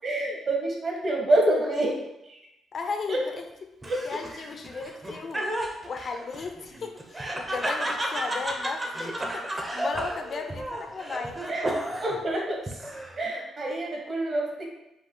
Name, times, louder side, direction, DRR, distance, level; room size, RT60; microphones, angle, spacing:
voice 1, 0.0-1.9 3.1-3.2 3.9-4.0 11.5-11.7 12.0-12.6 13.2-14.7, right 1 dB, 50° right, -1 dB, 1.4 m, -26 dB
voice 2, 2.7-3.5 4.0-11.4, left 4 dB, 50° left, 6 dB, 0.5 m, -35 dB
Laughter, 3.8-12.2 12.7-13.3, right 1 dB, 20° right, 0.7 m, -33 dB
5.3 x 2.3 x 3.8 m, 0.88 s
cardioid pair, 90°, 0 cm